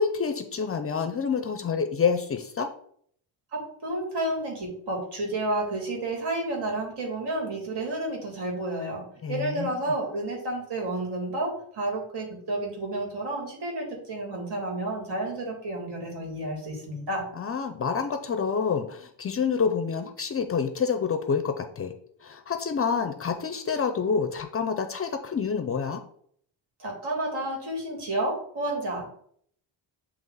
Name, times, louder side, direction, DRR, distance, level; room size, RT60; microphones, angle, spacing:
voice 1, 0.0-2.7 9.2-9.8 17.4-21.9 22.2-26.0, left 6 dB, 30° left, 7 dB, 0.5 m, -28 dB
voice 2, 3.5-9.0 9.3-17.3 26.8-29.0, right 1 dB, 65° right, 0 dB, 2.6 m, -31 dB
8.8 x 3.0 x 4.0 m, 0.64 s
cardioid pair, 125°, 43 cm